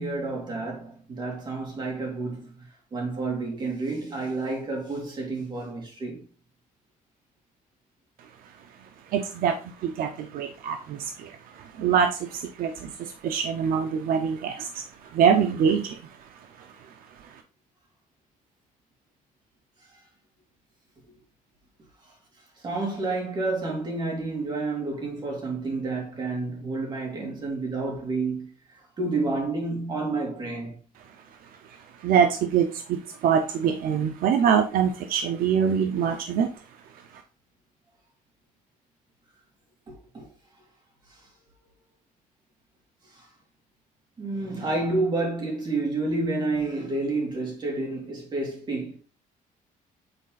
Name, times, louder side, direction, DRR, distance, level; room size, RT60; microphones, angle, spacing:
voice 1, 0.0-6.2 21.1-21.2 22.1-22.2 22.6-30.7 39.9-40.3 41.1-41.2 43.1-43.3 44.2-49.0, right 3 dB, 30° right, 2.8 m, -30 dB
voice 2, 9.1-16.7 17.2-17.4 31.7-36.5, right 7 dB, 75° right, 0.7 m, -25 dB
8.0 x 4.1 x 4.0 m
cardioid pair, 170°, 15 cm